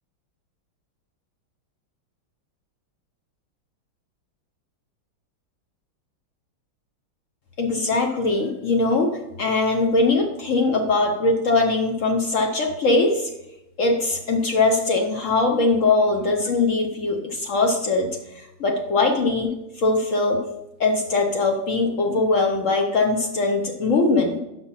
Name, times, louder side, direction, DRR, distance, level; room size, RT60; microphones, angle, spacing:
voice 1, 7.6-9.1 9.4-13.3 13.8-18.1 18.3-19.5 19.8-20.4 20.8-24.4, left 3 dB, 65° left, 3 dB, 0.8 m, -21 dB
6.1 x 6.0 x 5.6 m, 0.91 s
omnidirectional pair, 2.3 m